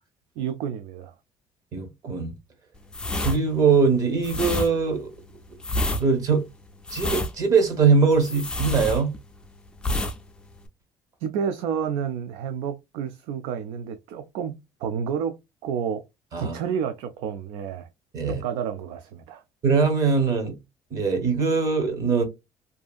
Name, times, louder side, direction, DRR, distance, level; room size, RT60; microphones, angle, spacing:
voice 1, 0.4-1.1 11.2-16.0 16.4-17.9 18.2-19.4, right 7 dB, 90° right, 0.4 m, -30 dB
voice 2, 1.7-2.3 3.2-5.1 6.0-6.4 6.9-9.1 16.3-16.6 18.1-18.4 19.6-20.6 20.9-22.2, right 5 dB, 40° right, 0.8 m, -21 dB
sound 1, 2.9-9.5 9.8-10.2 10.4-10.7, left 1 dB, 10° left, 0.3 m, -28 dB
2.6 x 2.4 x 2.2 m
cardioid pair, 170°, 10 cm